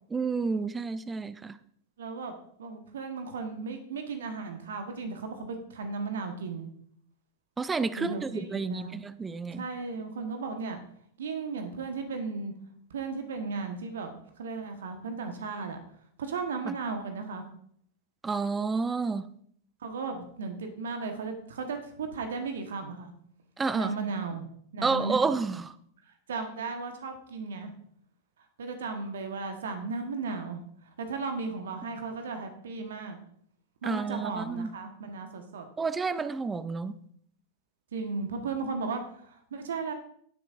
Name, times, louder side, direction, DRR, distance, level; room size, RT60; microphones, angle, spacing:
voice 1, 0.1-1.6 7.6-9.6 16.7-16.8 18.2-19.3 23.6-23.9 24.8-25.7 33.8-34.7 35.8-37.0, right 4 dB, 15° right, 15 dB, 0.5 m, -30 dB
voice 2, 2.0-2.3 2.6-6.7 7.9-9.0 9.5-10.8 11.2-12.5 12.9-15.8 16.2-17.5 19.8-23.1 23.7-24.4 24.7-25.2 26.3-27.7 28.6-33.2 33.8-35.7 37.9-39.9, right 4 dB, 65° right, 6 dB, 1.2 m, -35 dB
16.5 x 7.6 x 2.5 m, 0.66 s
figure-of-eight pair, 95°, 0 cm